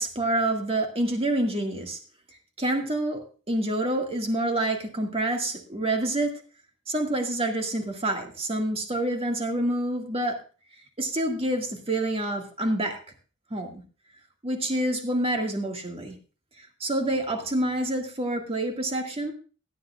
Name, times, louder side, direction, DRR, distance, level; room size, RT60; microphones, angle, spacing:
voice 1, 0.0-2.0 2.6-6.4 6.9-10.4 11.0-13.0 13.5-13.8 14.4-16.1 16.8-19.3, right 1 dB, 25° right, 3 dB, 1.8 m, -27 dB
16.5 x 10.0 x 2.4 m, 0.36 s
head